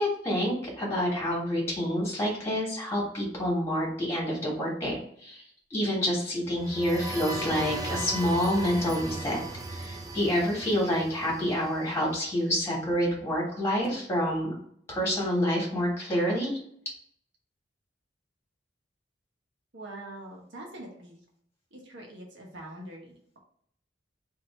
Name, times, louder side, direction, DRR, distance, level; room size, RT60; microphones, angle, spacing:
voice 1, 0.0-4.9 5.2-5.4 5.7-9.4 9.7-14.5 14.9-16.5, equal, 15° left, -4 dB, 1.6 m, -28 dB
sound 1, 6.5-12.2, right 2 dB, 20° right, 0.5 m, -37 dB
voice 2, 19.7-21.3 21.7-23.4, right 1 dB, 90° right, -1 dB, 1.1 m, -44 dB
3.0 x 2.7 x 4.3 m, 0.65 s
head